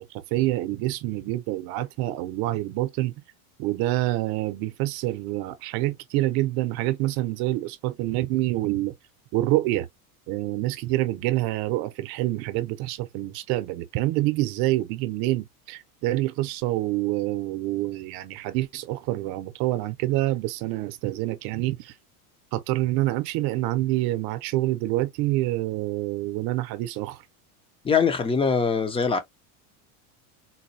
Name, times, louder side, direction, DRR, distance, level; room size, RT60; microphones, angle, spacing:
voice 1, 0.0-3.1 3.6-8.9 9.3-9.9 10.3-21.9 22.5-27.2, right 16 dB, 55° right, 0.7 m, -27 dB
voice 2, 27.8-29.2, left 5 dB, 10° left, 0.6 m, -22 dB
4.1 x 2.2 x 2.7 m
supercardioid pair, 135°, 45 cm